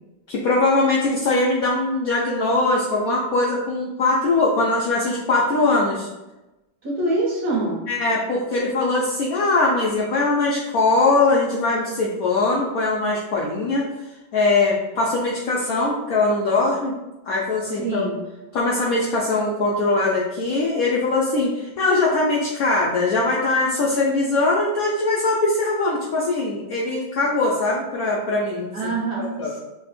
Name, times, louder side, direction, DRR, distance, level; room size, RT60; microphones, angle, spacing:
voice 1, 0.3-6.1 7.9-13.8 14.3-16.9 17.3-18.1 18.5-28.9 29.2-29.5, left 2 dB, 80° left, -4 dB, 0.8 m, -21 dB
voice 2, 6.8-7.8 17.8-18.2 28.7-29.6, right 2 dB, 60° right, -4 dB, 1.4 m, -25 dB
3.4 x 2.1 x 4.0 m, 1.0 s
omnidirectional pair, 2.1 m